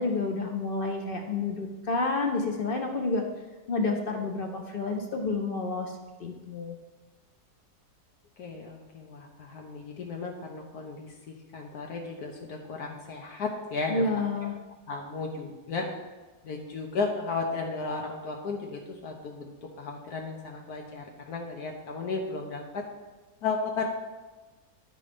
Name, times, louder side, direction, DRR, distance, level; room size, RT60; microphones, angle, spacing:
voice 1, 0.0-3.2 3.7-6.8 13.9-14.6, left 3 dB, 45° left, 3 dB, 0.7 m, -29 dB
voice 2, 8.4-14.1 14.4-14.5 14.9-15.9 16.4-22.8 23.4-23.9, left 4 dB, 75° left, 1 dB, 1.3 m, -34 dB
9.9 x 5.2 x 5.1 m, 1.2 s
omnidirectional pair, 1.7 m